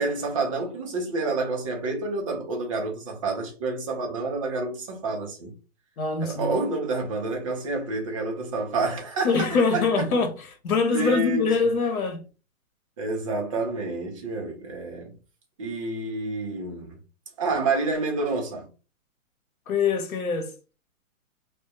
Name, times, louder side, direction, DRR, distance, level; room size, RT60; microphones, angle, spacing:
voice 1, 0.0-5.5 6.2-9.4 9.7-10.1 10.9-11.4 13.0-15.1 15.6-17.0 17.4-18.7, right 3 dB, 25° right, 0.5 m, -28 dB
voice 2, 6.0-6.6 9.2-10.3 10.6-12.2 19.7-20.5, left 4 dB, 90° left, 0.9 m, -23 dB
2.2 x 2.1 x 2.7 m
hypercardioid pair, 155°, 41 cm